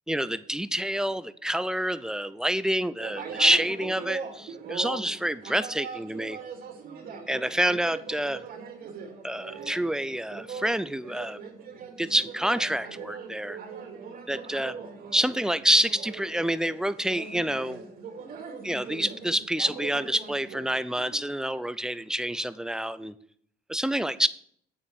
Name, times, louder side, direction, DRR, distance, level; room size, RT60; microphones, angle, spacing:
voice 1, 0.1-6.4 7.3-8.4 9.2-11.4 12.0-13.6 14.3-14.8 15.1-17.9 18.6-23.1 23.7-24.3, right 1 dB, 5° right, 15 dB, 0.5 m, -27 dB
sound 1, 3.0-21.2, right 6 dB, 60° right, 2.5 m, -41 dB
8.7 x 7.1 x 6.3 m, 0.63 s
cardioid pair, 110°, 17 cm